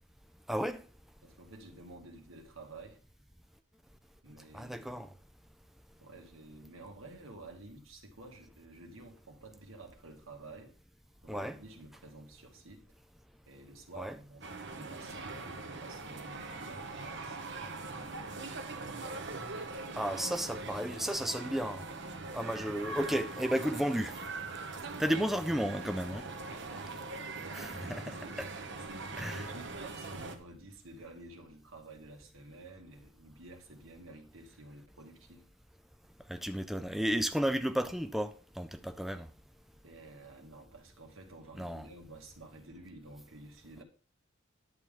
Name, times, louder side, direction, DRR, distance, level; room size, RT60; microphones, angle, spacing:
voice 1, 0.5-0.8 4.5-5.1 11.3-11.6 14.0-14.2 20.0-21.8 22.3-24.2 25.0-26.3 27.5-28.5 29.2-29.5 36.3-39.3 41.6-41.9, equal, ahead, 0.3 m, -33 dB
voice 2, 1.2-3.0 4.2-5.1 6.0-10.7 11.2-12.9 13.5-19.3 22.4-22.7 24.9-25.2 26.5-27.1 27.4-28.4 28.8-35.5 39.8-43.8, right 2 dB, 85° right, 2.0 m, -51 dB
sound 1, 14.4-30.4, right 3 dB, 60° right, 1.2 m, -42 dB
10.5 x 7.1 x 3.8 m
head